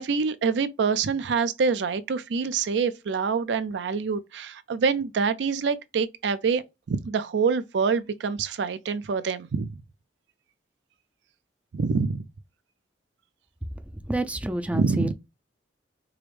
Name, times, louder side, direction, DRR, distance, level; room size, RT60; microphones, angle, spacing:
voice 1, 0.0-6.6 6.9-9.7 11.7-12.2 14.7-15.1, right 5 dB, 75° right, 0.4 m, -26 dB
voice 2, 14.0-15.1, right 1 dB, 10° right, 0.3 m, -28 dB
4.8 x 2.0 x 3.1 m
head